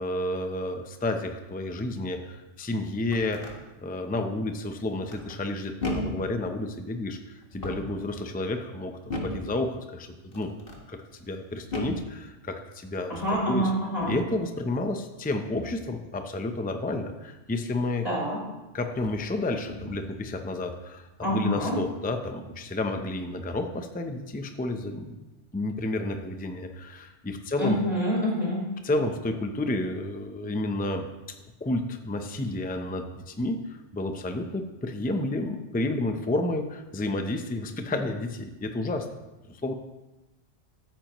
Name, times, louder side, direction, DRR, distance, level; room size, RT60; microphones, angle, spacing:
voice 1, 0.0-3.5 3.8-10.1 10.3-10.5 10.9-11.0 11.3-13.2 13.5-13.7 14.1-18.1 18.7-25.2 25.5-27.8 28.8-39.2 39.5-39.7, left 2 dB, 10° left, 6 dB, 0.5 m, -31 dB
sound 1, 3.0-3.6 5.1-5.5 5.8-6.3 7.4-8.0 9.1-9.5 10.3-10.8 11.7-12.1 13.1-13.4 14.0-14.3 15.5-15.9 18.0-18.1 18.9-19.3 19.7-20.1, left 2 dB, 50° left, 1.7 m, -35 dB
voice 2, 13.1-14.1 18.0-18.4 21.2-21.8 27.6-28.6, equal, 30° left, -5 dB, 3.9 m, -26 dB
14.0 x 9.0 x 3.0 m, 1.1 s
omnidirectional pair, 1.2 m